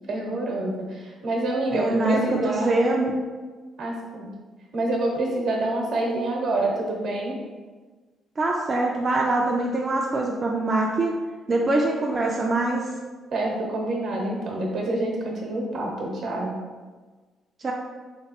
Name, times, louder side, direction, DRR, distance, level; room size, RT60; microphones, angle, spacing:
voice 1, 0.1-2.7 3.8-4.3 4.7-7.3 13.3-16.6, right 2 dB, 70° right, 0 dB, 0.9 m, -27 dB
voice 2, 1.7-3.2 8.4-11.1 11.5-12.9 17.6-17.7, right 2 dB, 35° right, -1 dB, 0.3 m, -23 dB
3.3 x 2.9 x 2.9 m, 1.4 s
cardioid pair, 90°, 0 cm